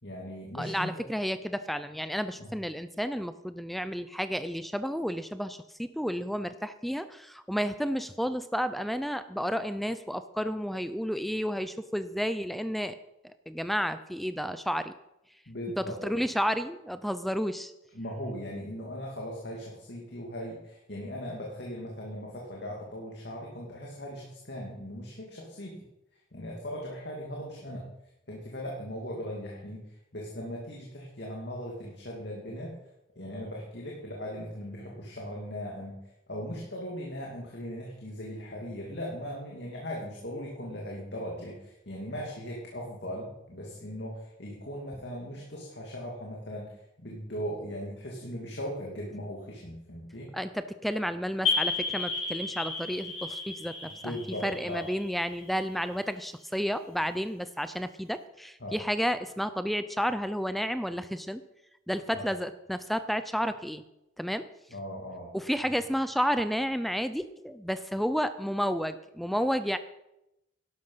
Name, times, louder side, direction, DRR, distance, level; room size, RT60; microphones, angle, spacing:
voice 1, 0.0-1.0 2.4-2.5 15.5-16.2 17.9-25.8 26.3-27.9 28.3-32.8 33.2-36.0 36.3-50.3 54.0-54.9 58.6-58.8 62.1-62.3 64.7-65.3 65.6-65.7, equal, 55° left, -2 dB, 2.5 m, -39 dB
voice 2, 0.6-13.0 13.5-14.9 15.8-17.7 50.3-54.2 54.4-61.4 61.9-63.8 64.2-64.4 65.3-69.8, equal, ahead, 12 dB, 0.4 m, -31 dB
sound 1, 51.4-55.9, left 4 dB, 90° left, 5.7 m, -33 dB
12.0 x 11.5 x 5.7 m, 0.88 s
head